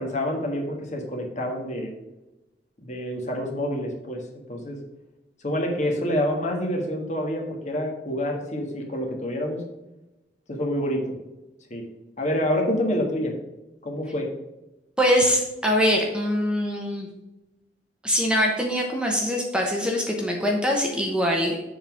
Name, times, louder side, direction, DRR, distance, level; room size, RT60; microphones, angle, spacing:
voice 1, 0.0-1.9 2.8-4.2 4.5-4.8 5.4-9.6 10.5-11.1 11.7-11.8 12.2-13.3 13.8-14.3, equal, 40° left, 1 dB, 1.5 m, -27 dB
voice 2, 15.0-17.1 18.0-21.6, equal, 5° right, 0 dB, 0.9 m, -23 dB
7.1 x 3.9 x 5.8 m, 1.0 s
head